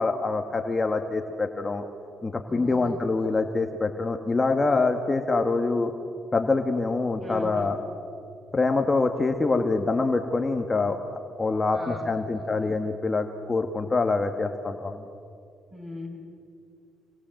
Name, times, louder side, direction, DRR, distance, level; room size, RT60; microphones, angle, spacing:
voice 1, 0.0-1.8 2.2-5.9 6.3-7.8 8.5-15.0, left 3 dB, 25° left, 5 dB, 1.7 m, -25 dB
voice 2, 2.5-3.0 7.2-7.7 11.7-12.0 12.3-12.5 15.7-16.2, left 1 dB, 25° right, 3 dB, 6.2 m, -39 dB
27.5 x 22.5 x 7.8 m, 2.4 s
cardioid pair, 90°, 0 cm